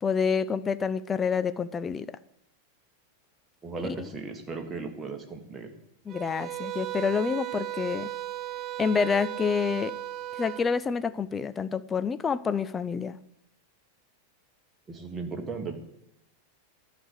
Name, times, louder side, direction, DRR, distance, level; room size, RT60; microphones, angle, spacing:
voice 1, 0.0-2.1 4.0-4.1 6.1-8.1 8.8-9.9 10.4-13.2, left 6 dB, 20° left, 14 dB, 0.4 m, -28 dB
voice 2, 3.6-5.7 14.9-15.7, right 4 dB, 15° right, 2 dB, 1.7 m, -36 dB
sound 1, 6.1-10.7, right 14 dB, 35° right, 0.5 m, -36 dB
12.0 x 5.1 x 8.1 m, 0.80 s
figure-of-eight pair, 90°, 0 cm